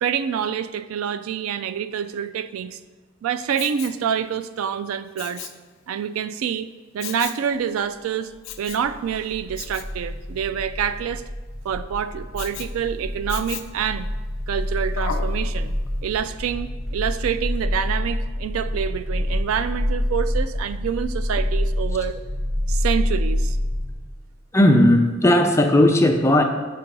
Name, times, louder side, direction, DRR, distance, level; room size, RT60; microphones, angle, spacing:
voice 1, 0.0-2.8 3.2-5.5 5.9-6.7 6.9-8.3 8.6-11.2 11.6-14.1 14.5-15.8 16.0-22.2 22.7-23.6, right 8 dB, 90° right, 13 dB, 0.3 m, -27 dB
Respiratory sounds, 3.5-4.0 5.2-5.6 7.0-7.5 8.4-8.9 9.6-9.9 12.4-12.7 13.3-13.8 15.0-15.4 15.9-16.0, left 8 dB, 80° left, 0.5 m, -34 dB
sound 1, 8.5-23.9, left 1 dB, 30° right, 1.4 m, -27 dB
sound 2, 15.9-23.7, equal, 50° right, 1.3 m, -42 dB
voice 2, 24.5-26.4, left 1 dB, 15° left, 4 dB, 0.4 m, -16 dB
5.9 x 3.8 x 5.2 m, 1.4 s
head